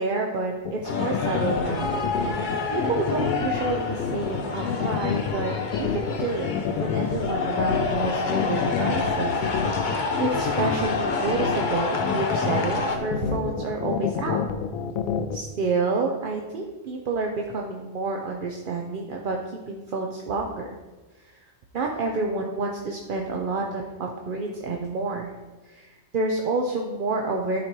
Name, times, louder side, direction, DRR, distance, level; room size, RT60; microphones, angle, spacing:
voice 1, 0.0-2.3 2.7-6.5 6.8-9.8 10.2-14.4 15.3-19.4 19.7-20.7 21.2-21.4 21.7-25.3 25.6-27.6, right 3 dB, 50° right, 1 dB, 0.6 m, -29 dB
sound 1, 0.7-15.4, left 7 dB, 90° left, 1.0 m, -28 dB
sound 2, 0.8-13.0, left 4 dB, 45° left, 0.8 m, -28 dB
12.5 x 4.3 x 3.0 m, 1.2 s
omnidirectional pair, 1.4 m